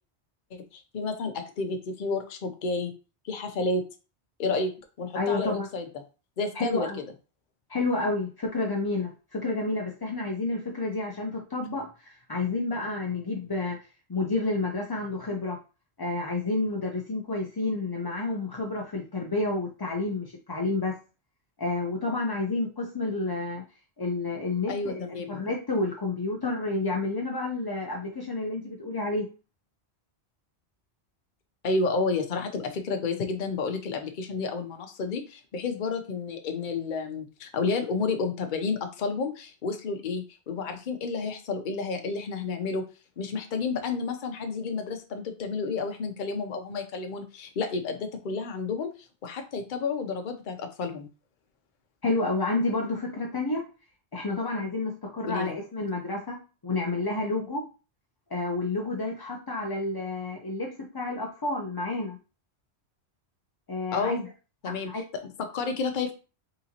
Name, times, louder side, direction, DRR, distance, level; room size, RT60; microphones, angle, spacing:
voice 1, 0.5-2.9 3.2-3.8 4.4-4.7 5.0-5.9 6.4-6.9 24.7-25.5 31.6-42.8 43.2-48.9 49.2-51.1 55.2-55.6 63.9-64.3 64.6-66.1, left 4 dB, 50° left, 5 dB, 0.8 m, -31 dB
voice 2, 5.1-5.7 6.5-7.0 7.7-13.8 14.1-15.6 16.0-21.0 21.6-23.6 24.0-29.3 52.0-53.6 54.1-57.7 58.3-62.2 63.7-64.2 64.6-65.0, left 2 dB, 30° left, 0 dB, 0.5 m, -30 dB
4.0 x 3.8 x 2.8 m, 0.33 s
omnidirectional pair, 1.1 m